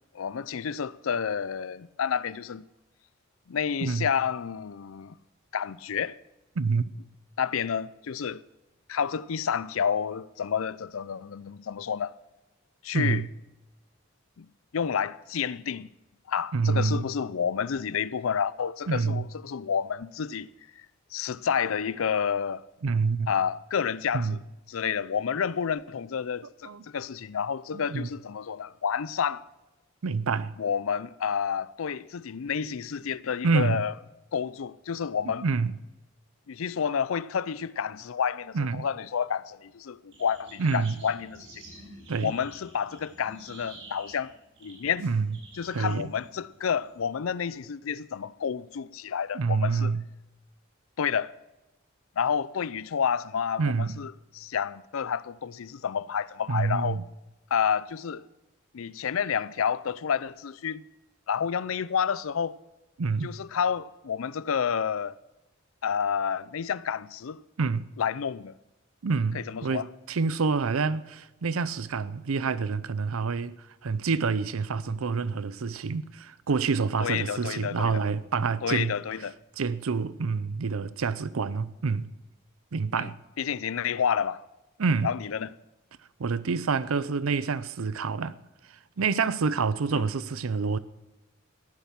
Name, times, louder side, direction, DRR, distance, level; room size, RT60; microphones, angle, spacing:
voice 1, 0.1-2.6 3.5-5.2 5.5-6.2 7.4-8.4 8.9-12.1 12.8-13.2 14.4-14.5 14.7-15.9 16.3-20.5 21.1-22.6 23.3-24.4 24.7-29.4 30.6-33.9 34.3-35.4 36.5-41.6 42.2-44.3 44.6-45.0 45.6-49.9 51.0-51.3 52.2-57.0 57.5-58.2 58.7-60.8 61.3-62.6 63.2-65.1 65.8-67.4 68.0-68.5 69.3-69.9 77.0-78.0 78.6-79.4 83.0-84.4 85.0-85.5 89.9-90.1, left 7 dB, 75° left, 0.5 m, -30 dB
voice 2, 12.9-13.3 16.5-17.1 18.9-19.3 22.8-23.3 24.1-24.4 26.7-26.8 27.7-28.1 30.0-30.6 33.4-33.8 35.4-35.7 38.5-38.9 40.6-41.0 42.1-42.3 45.0-45.3 45.7-46.1 49.3-50.0 53.6-54.0 56.5-57.0 63.0-63.3 67.6-67.9 69.0-73.6 73.8-79.0 79.6-82.1 82.7-83.2 84.8-85.1 86.2-88.4 89.0-90.8, right 4 dB, 90° right, 0.6 m, -27 dB
sound 1, 40.1-47.0, right 2 dB, 65° right, 5.5 m, -49 dB
15.0 x 10.5 x 5.9 m
head